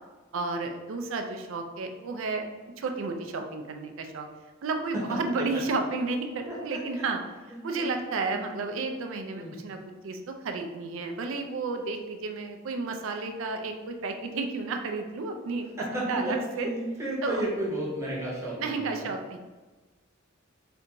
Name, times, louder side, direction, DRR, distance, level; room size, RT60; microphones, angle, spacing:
voice 1, 0.3-2.5 2.8-4.3 4.6-7.2 7.6-9.8 10.0-15.6 15.9-16.7 17.2-17.5 18.6-19.4, right 3 dB, 65° right, 5 dB, 0.4 m, -32 dB
voice 2, 6.5-6.8 7.5-7.9 8.3-8.4 9.3-9.5 15.8-19.1, right 1 dB, 15° right, -6 dB, 0.8 m, -33 dB
3.3 x 2.6 x 2.9 m, 1.3 s
head